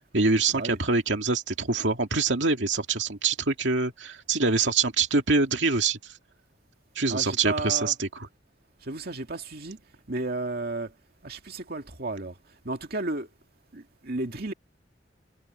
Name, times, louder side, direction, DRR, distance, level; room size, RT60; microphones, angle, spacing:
voice 1, 0.1-6.1 7.0-8.3, right 4 dB, 75° right, 2.4 m, -25 dB
voice 2, 7.1-7.9 8.8-9.8 10.1-10.9 11.2-12.3 12.7-13.3 13.7-14.5, right 2 dB, 60° right, 2.3 m, -33 dB
head